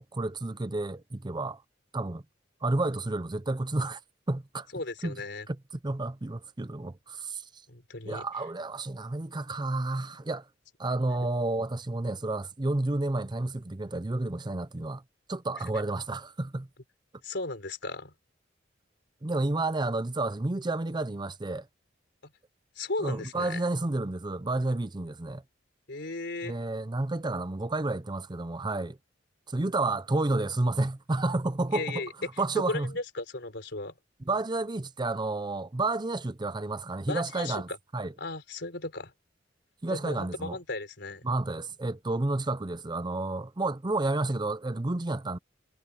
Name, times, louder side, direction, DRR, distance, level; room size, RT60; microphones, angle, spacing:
voice 1, 0.0-1.6 1.9-2.2 2.6-4.0 4.3-4.7 5.0-5.2 5.5-5.6 5.8-7.6 8.1-10.5 10.8-15.0 15.3-16.7 19.2-21.7 23.0-25.4 26.4-29.0 29.5-32.9 34.3-38.1 39.8-40.6 41.2-45.4, right 2 dB, 25° right, 0.6 m, -30 dB
voice 2, 4.7-5.5 7.7-8.2 17.2-18.1 22.2-22.3 22.8-23.6 25.9-26.6 31.7-32.1 32.6-33.9 37.1-37.8 38.2-39.1 39.9-41.2, left 2 dB, 65° left, 4.1 m, -35 dB
head